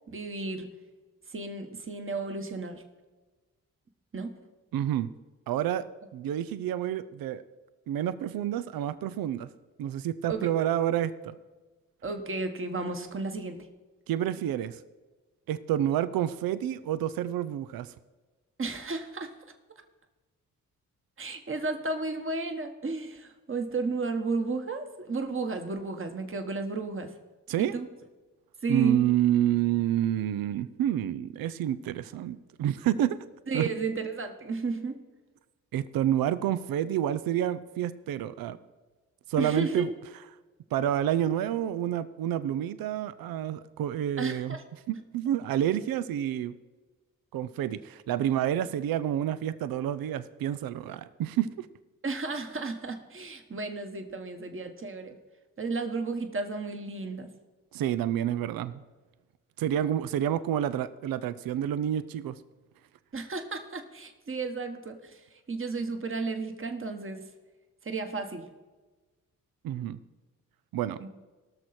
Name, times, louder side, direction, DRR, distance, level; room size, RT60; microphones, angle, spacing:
voice 1, 0.1-0.7 1.3-2.8 4.1-4.3 10.3-10.5 12.0-13.7 18.6-19.3 21.2-27.1 27.6-27.9 28.6-29.1 33.5-35.0 39.4-39.9 44.2-44.6 52.0-55.2 55.6-57.3 63.1-65.2 65.5-67.2 67.8-68.5 71.0-71.1, right 3 dB, 35° right, 6 dB, 1.4 m, -33 dB
voice 2, 4.7-5.1 5.5-5.9 6.1-7.4 7.9-9.5 9.8-11.3 14.1-14.8 15.5-17.9 27.5-27.7 28.7-33.2 33.5-33.7 35.7-38.6 39.3-39.9 40.7-44.6 44.9-46.6 47.3-51.7 57.7-58.8 59.6-62.4 69.6-70.0 70.7-71.0, right 11 dB, 85° right, 15 dB, 0.5 m, -29 dB
17.5 x 6.5 x 4.3 m, 1.2 s
supercardioid pair, 50°, 34 cm